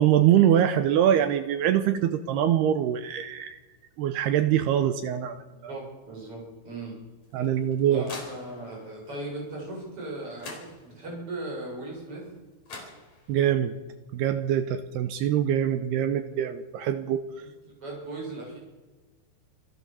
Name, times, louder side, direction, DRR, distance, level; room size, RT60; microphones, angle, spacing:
voice 1, 0.0-3.6 4.0-5.7 7.3-8.1 13.3-13.7 14.1-17.2, right 10 dB, 75° right, 9 dB, 2.6 m, -24 dB
voice 2, 5.7-7.0 7.4-7.5 7.9-12.3 17.8-18.6, right 2 dB, 30° right, -2 dB, 8.6 m, -38 dB
sound 1, 7.2-8.9 10.0-10.1 10.4-11.2 12.3-12.4 12.7-13.5, left 3 dB, 40° left, 5.5 m, -44 dB
27.5 x 17.0 x 7.1 m, 1.3 s
omnidirectional pair, 5.3 m